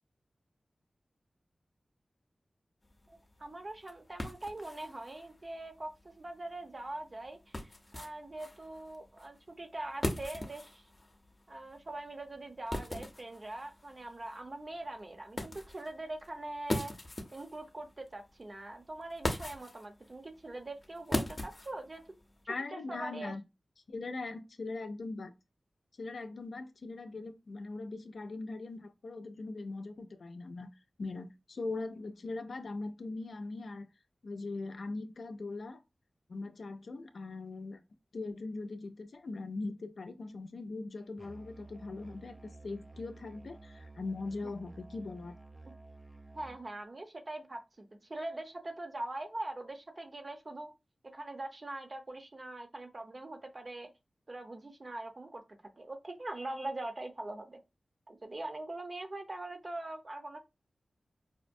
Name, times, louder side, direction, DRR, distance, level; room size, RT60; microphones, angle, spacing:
sound 1, 2.8-22.4, left 1 dB, 40° left, 0.7 m, -42 dB
voice 1, 3.1-10.9 11.5-16.9 17.3-22.0 22.4-23.3 46.3-50.7 51.1-53.9 54.3-55.4 55.8-57.6 58.1-60.4, right 2 dB, 45° right, 0.7 m, -42 dB
voice 2, 22.5-23.4 23.9-25.3 26.0-30.7 31.0-33.9 34.2-35.8 36.3-37.8 38.1-42.4 42.6-45.3, left 3 dB, 75° left, 0.4 m, -40 dB
Musical instrument, 41.2-46.7, right 2 dB, 15° right, 0.3 m, -52 dB
4.9 x 2.1 x 2.6 m
wide cardioid pair, 65°, 0 cm